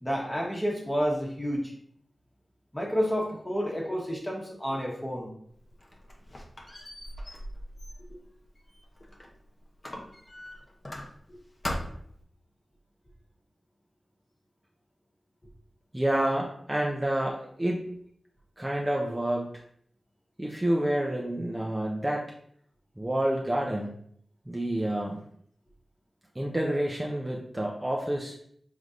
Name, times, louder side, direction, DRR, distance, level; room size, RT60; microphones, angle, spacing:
voice 1, 0.0-1.7 2.7-5.3 11.3-11.4, equal, 15° left, -2 dB, 1.1 m, -30 dB
Squeak, 5.6-9.4 9.8-11.3 11.6-12.2, left 1 dB, 35° left, 0.7 m, -40 dB
voice 2, 15.9-17.9 18.6-19.5 20.4-22.3 23.0-24.0 24.5-25.2 26.4-28.3, right 1 dB, 15° right, -1 dB, 0.5 m, -28 dB
5.3 x 3.3 x 2.5 m, 0.66 s
wide cardioid pair, 85°, 0 cm